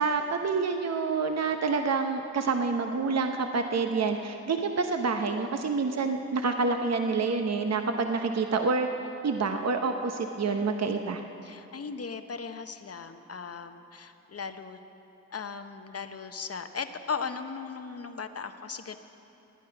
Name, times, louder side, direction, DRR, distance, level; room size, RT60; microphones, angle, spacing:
voice 1, 0.0-8.9 9.2-11.2, right 4 dB, 55° right, 5 dB, 0.8 m, -27 dB
voice 2, 11.4-14.8 15.3-19.0, left 5 dB, 50° left, 9 dB, 0.9 m, -37 dB
17.5 x 9.5 x 5.9 m, 3.0 s
cardioid pair, 40°, 32 cm